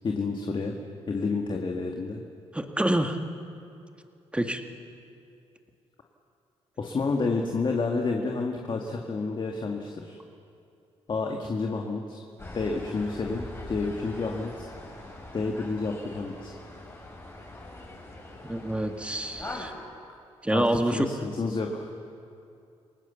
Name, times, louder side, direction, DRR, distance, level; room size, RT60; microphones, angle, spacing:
voice 1, 0.0-0.8 1.1-2.2 6.8-10.2 11.1-12.2 12.5-14.7 15.3-16.5 20.5-21.9, left 3 dB, 45° left, 2 dB, 2.0 m, -30 dB
voice 2, 2.5-3.2 4.3-4.6 18.4-19.7 20.4-21.1, right 1 dB, 10° right, 6 dB, 1.9 m, -27 dB
sound 1, 12.4-19.7, left 2 dB, 20° left, 5.2 m, -42 dB
29.0 x 18.5 x 7.2 m, 2.5 s
cardioid pair, 75°, 12 cm